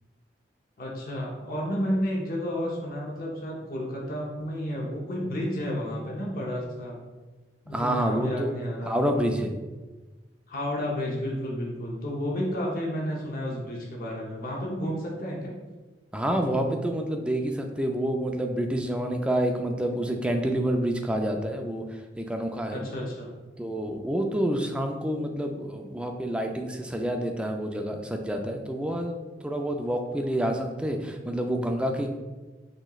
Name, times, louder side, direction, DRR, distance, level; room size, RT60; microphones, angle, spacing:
voice 1, 0.8-7.0 7.6-9.0 10.5-15.5 22.7-23.3, equal, 55° left, -2 dB, 0.8 m, -31 dB
voice 2, 7.7-8.5 8.9-9.6 16.1-22.8 23.6-32.1, right 1 dB, 5° right, 3 dB, 0.3 m, -28 dB
6.2 x 3.0 x 2.4 m, 1.2 s
head